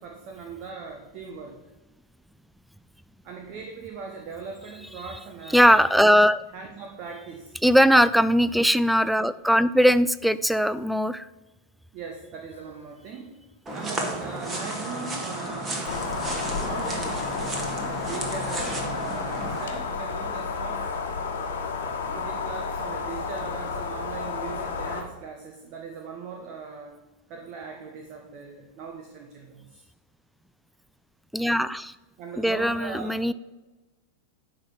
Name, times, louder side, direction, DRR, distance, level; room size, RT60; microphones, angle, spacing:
voice 1, 0.0-1.6 3.2-5.8 6.5-7.6 11.9-13.3 13.7-15.9 16.6-17.2 18.1-20.9 22.1-27.0 27.3-29.8 32.2-33.1, right 5 dB, 40° right, 2 dB, 1.2 m, -39 dB
voice 2, 5.5-6.4 7.6-11.3 31.3-31.9 32.4-33.3, equal, ahead, 16 dB, 0.4 m, -20 dB
sound 1, 12.5-13.3 14.5-20.9, left 4 dB, 85° left, 0.9 m, -45 dB
sound 2, 13.7-19.7, right 2 dB, 20° right, 1.8 m, -33 dB
sound 3, 15.9-25.0, left 5 dB, 60° left, 1.4 m, -31 dB
10.5 x 3.9 x 7.5 m, 1.1 s
figure-of-eight pair, 90°, 0 cm